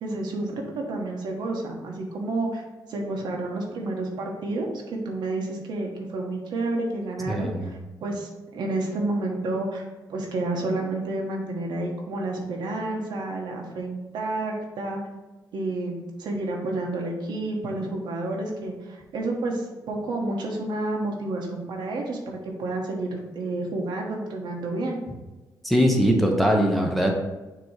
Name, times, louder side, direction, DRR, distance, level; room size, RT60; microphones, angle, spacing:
voice 1, 0.0-2.6 2.9-9.8 10.1-15.0 15.5-25.0, right 2 dB, 75° right, 0 dB, 1.2 m, -30 dB
voice 2, 7.3-7.7 25.6-27.1, equal, ahead, 1 dB, 0.8 m, -21 dB
6.8 x 3.0 x 4.7 m, 1.1 s
cardioid pair, 130°, 8 cm